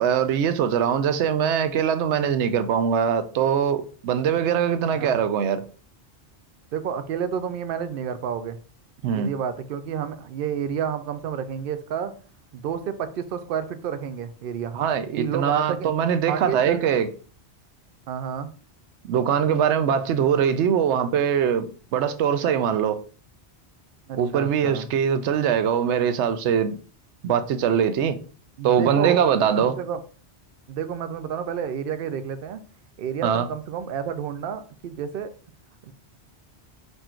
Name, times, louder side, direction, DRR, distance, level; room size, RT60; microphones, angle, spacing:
voice 1, 0.0-5.6 9.0-9.3 14.7-17.1 19.0-21.7 21.9-23.0 24.2-26.8 27.2-28.2 28.6-29.7 33.2-33.5, right 8 dB, 90° right, 0.9 m, -22 dB
voice 2, 6.7-8.6 9.1-12.1 12.5-14.8 15.1-15.9 16.3-16.8 18.1-18.5 24.1-24.9 28.6-29.2 29.6-30.0 30.7-32.6 33.0-35.3 35.9-36.0, right 7 dB, 60° right, 0.7 m, -30 dB
4.4 x 2.6 x 4.3 m
omnidirectional pair, 1.1 m